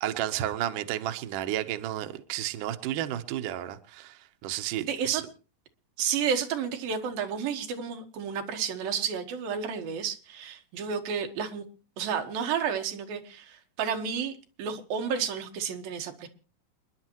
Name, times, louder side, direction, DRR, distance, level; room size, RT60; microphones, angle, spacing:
voice 1, 0.0-5.2, right 12 dB, 75° right, 2.4 m, -32 dB
voice 2, 4.9-5.2 6.0-11.6 12.0-16.3, right 7 dB, 90° right, 3.2 m, -31 dB
28.5 x 10.5 x 3.0 m
omnidirectional pair, 4.0 m